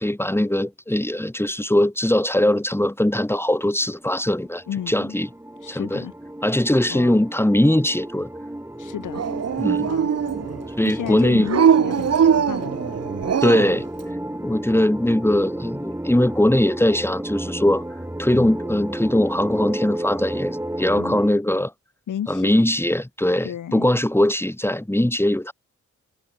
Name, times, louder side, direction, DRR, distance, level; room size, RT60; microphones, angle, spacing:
voice 1, 0.0-5.3 5.7-6.0 6.4-8.3 9.6-9.9 10.8-11.5 13.4-13.9 14.4-17.8 18.2-21.7 22.3-25.5, left 1 dB, 10° left, 4.7 m, -21 dB
sound 1, 3.6-21.3, right 1 dB, 10° right, 6.2 m, -33 dB
voice 2, 4.7-5.2 5.6-6.1 6.9-7.2 8.8-9.2 9.8-10.1 10.8-12.8 18.3-18.5 21.0-21.2 22.1-22.5 23.4-23.9, left 10 dB, 85° left, 4.2 m, -32 dB
Dog, 9.1-10.6 11.4-13.8, right 7 dB, 55° right, 1.5 m, -21 dB
cardioid pair, 80°, 30 cm